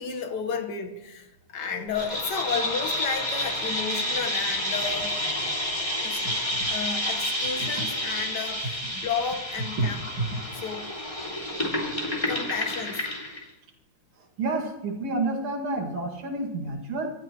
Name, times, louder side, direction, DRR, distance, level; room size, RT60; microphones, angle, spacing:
voice 1, 0.0-5.2 6.0-6.2 6.7-10.0 10.5-10.9 12.3-13.1, left 6 dB, 55° left, 5 dB, 1.9 m, -32 dB
sound 1, 1.9-13.4, left 1 dB, 15° left, 2.6 m, -29 dB
voice 2, 14.4-17.1, right 2 dB, 85° right, 2 dB, 3.1 m, -29 dB
26.0 x 12.5 x 3.1 m, 0.94 s
omnidirectional pair, 2.3 m